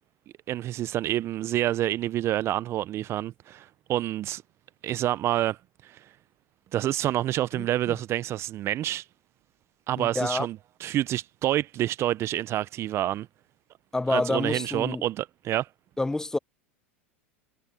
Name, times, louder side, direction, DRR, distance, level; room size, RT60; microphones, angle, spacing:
voice 1, 0.5-4.4 4.8-5.6 5.8-6.0 6.7-9.0 9.9-13.3 14.1-15.7, right 13 dB, 40° right, 0.8 m, -28 dB
voice 2, 7.5-8.0 10.0-10.5 13.9-15.0 16.0-16.4, left 2 dB, 10° left, 0.6 m, -28 dB
hypercardioid pair, 95°, 7 cm